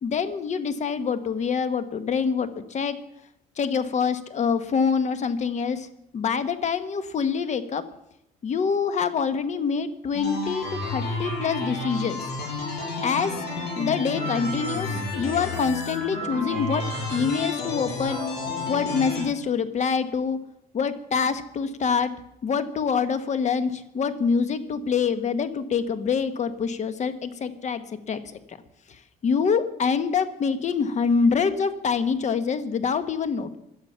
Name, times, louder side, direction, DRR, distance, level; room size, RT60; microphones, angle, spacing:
voice 1, 0.0-3.0 3.6-5.9 6.1-7.8 8.4-12.2 13.0-13.3 13.8-16.8 17.1-18.2 18.7-20.4 20.7-22.1 22.4-28.2 28.5-28.6 28.9-33.6, left 6 dB, 45° left, 12 dB, 1.3 m, -25 dB
sound 1, 10.1-19.2, left 2 dB, 75° left, 7.4 m, -31 dB
17.5 x 11.5 x 5.8 m, 0.80 s
cardioid pair, 110°, 17 cm